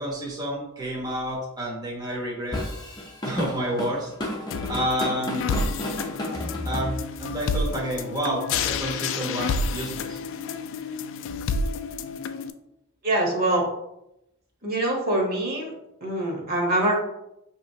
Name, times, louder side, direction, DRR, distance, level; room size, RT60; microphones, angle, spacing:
voice 1, 0.0-2.6 3.2-4.1 4.7-5.6 6.6-10.2, equal, 20° right, -4 dB, 0.8 m, -29 dB
Drum kit / Drum, 2.5-7.3, left 1 dB, 20° left, 0.7 m, -32 dB
sound 1, 4.5-12.5, left 4 dB, 60° left, 0.3 m, -30 dB
voice 2, 13.0-13.7 14.6-15.7 16.0-17.0, right 1 dB, 45° right, 0 dB, 1.0 m, -24 dB
5.6 x 2.9 x 2.7 m, 0.85 s
head